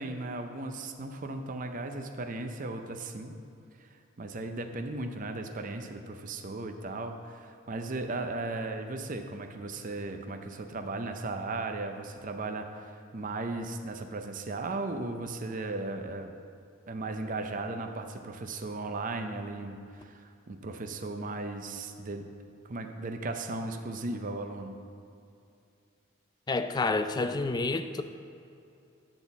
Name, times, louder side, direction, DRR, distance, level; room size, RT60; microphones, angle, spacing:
voice 1, 0.0-3.4 3.8-3.9 4.2-16.3 16.9-22.3 22.6-24.8, right 2 dB, 40° right, 5 dB, 0.5 m, -36 dB
voice 2, 26.5-28.0, left 3 dB, 20° left, 9 dB, 0.3 m, -29 dB
10.5 x 4.1 x 7.0 m, 2.7 s
head